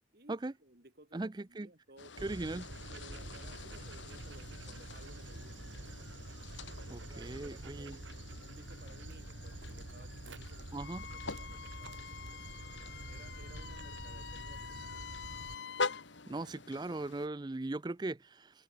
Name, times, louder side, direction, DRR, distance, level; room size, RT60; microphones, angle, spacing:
voice 1, 0.1-2.4 2.9-5.9 6.7-12.5 12.8-14.9, right 1 dB, 55° right, 2.9 m, -58 dB
voice 2, 1.1-1.7 2.2-2.7 6.9-8.0 10.7-11.1 16.3-18.6, right 2 dB, 20° right, 0.4 m, -39 dB
sound 1, 2.0-17.3, left 4 dB, 85° left, 2.3 m, -46 dB
Dog, 2.2-15.5, right 2 dB, 90° right, 2.0 m, -47 dB
Wind instrument woodwind instrument, 10.8-16.1, left 8 dB, 70° left, 0.5 m, -48 dB
open air
head